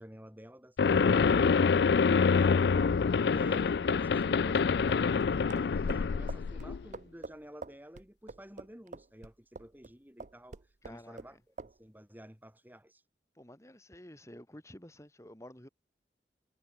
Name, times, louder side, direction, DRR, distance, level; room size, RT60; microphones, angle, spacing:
voice 1, 0.0-13.0, equal, 10° right, 5.1 m, -51 dB
sound 1, 0.8-6.8, left 5 dB, 70° left, 0.4 m, -26 dB
sound 2, 3.5-9.9 10.2-11.3 11.6-11.8, right 3 dB, 45° right, 0.6 m, -46 dB
voice 2, 10.8-11.2 13.4-15.7, left 1 dB, 15° left, 2.6 m, -51 dB
head